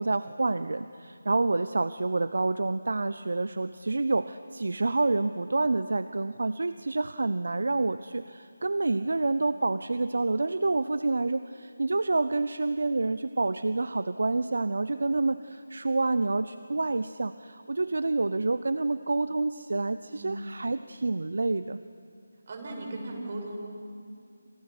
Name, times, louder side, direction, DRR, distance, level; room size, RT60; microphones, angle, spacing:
voice 1, 0.0-21.8, right 3 dB, 65° right, 13 dB, 0.8 m, -28 dB
voice 2, 22.5-23.6, right 2 dB, 40° right, 1 dB, 7.2 m, -37 dB
29.5 x 27.0 x 6.2 m, 2.4 s
figure-of-eight pair, 165°, 0 cm